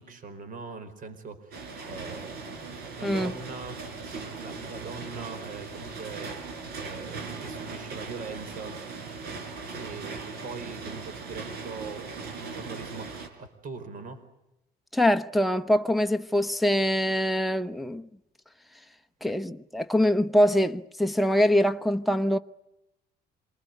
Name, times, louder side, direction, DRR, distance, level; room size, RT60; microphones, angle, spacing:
voice 1, 0.0-6.3 6.8-8.8 9.8-13.1 13.4-14.2, right 4 dB, 50° right, 4.7 m, -41 dB
sound 1, 1.5-13.3, right 4 dB, 70° right, 5.1 m, -39 dB
voice 2, 14.9-18.1 19.2-22.4, equal, ahead, 0.9 m, -24 dB
27.5 x 20.5 x 9.4 m
cardioid pair, 110°, 17 cm